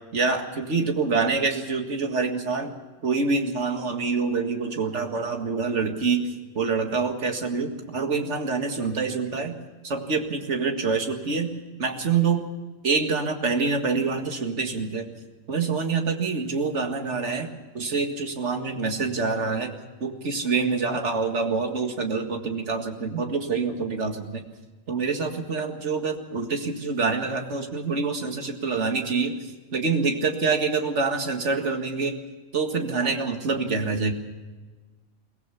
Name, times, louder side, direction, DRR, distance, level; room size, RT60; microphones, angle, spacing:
voice 1, 0.1-2.7 3.0-9.6 9.8-11.5 11.8-12.4 12.8-15.1 15.5-17.5 17.7-24.4 24.9-29.4 29.7-32.2 32.5-34.1, right 4 dB, 55° right, 4 dB, 2.2 m, -26 dB
23.0 x 17.5 x 7.1 m, 1.3 s
omnidirectional pair, 1.4 m